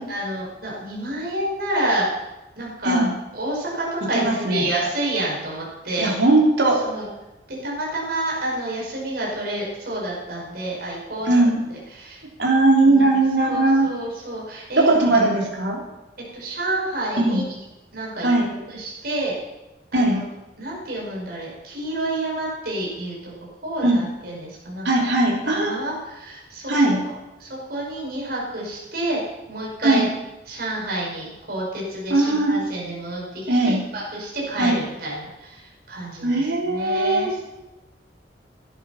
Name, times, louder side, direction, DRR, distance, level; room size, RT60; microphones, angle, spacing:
voice 1, 0.1-2.1 2.6-3.0 3.3-6.1 6.8-7.1 7.5-12.2 12.8-14.9 16.3-17.4 17.9-19.3 19.9-20.2 20.6-23.3 23.6-25.0 25.4-26.7 27.4-30.0 30.5-35.6 35.9-37.4, right 1 dB, 60° right, -4 dB, 5.6 m, -29 dB
voice 2, 4.1-4.6 6.0-6.8 11.3-11.6 12.4-13.9 14.8-15.8 17.2-17.4 18.2-18.5 19.9-20.2 23.8-24.0 24.8-25.8 26.7-27.0 29.8-30.0 32.1-32.6 33.5-33.8 34.6-34.8 36.2-37.3, right 2 dB, 85° right, -2 dB, 3.3 m, -19 dB
14.0 x 10.5 x 5.8 m, 1.0 s
head